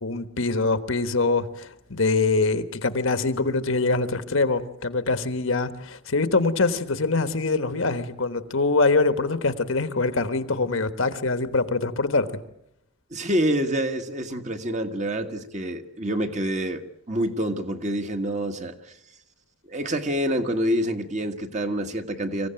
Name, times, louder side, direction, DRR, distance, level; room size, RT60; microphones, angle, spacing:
voice 1, 0.0-12.3, left 3 dB, 70° left, 11 dB, 1.4 m, -24 dB
voice 2, 13.1-16.8 17.1-18.9 19.7-22.5, equal, 35° right, 6 dB, 1.5 m, -27 dB
25.5 x 16.0 x 9.0 m, 0.81 s
head